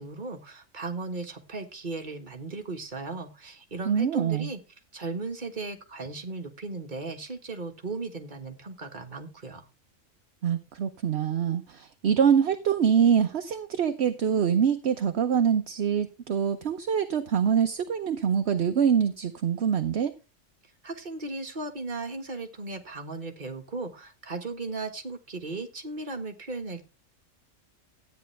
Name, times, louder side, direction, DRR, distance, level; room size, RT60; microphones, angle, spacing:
voice 1, 0.0-4.6 4.9-9.6 20.8-26.8, right 3 dB, 35° right, 4 dB, 1.7 m, -36 dB
voice 2, 3.9-4.5 10.4-20.1, right 7 dB, 60° right, 8 dB, 1.0 m, -24 dB
13.0 x 9.5 x 3.3 m, 0.28 s
omnidirectional pair, 1.4 m